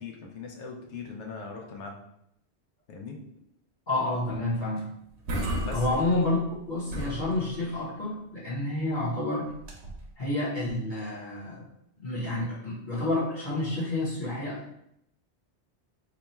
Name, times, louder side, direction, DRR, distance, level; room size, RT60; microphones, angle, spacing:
voice 1, 0.0-1.9 2.9-3.2 5.6-5.9, left 4 dB, 85° left, 2 dB, 1.0 m, -40 dB
voice 2, 3.9-4.9 5.7-6.4 6.7-9.5 10.2-11.6 12.0-14.7, left 2 dB, 45° left, -7 dB, 1.1 m, -29 dB
sound 1, 4.8-4.9 5.1-6.6 6.9-7.8 9.5-10.1, right 1 dB, 75° right, 1.0 m, -34 dB
2.9 x 2.3 x 4.2 m, 0.75 s
omnidirectional pair, 1.1 m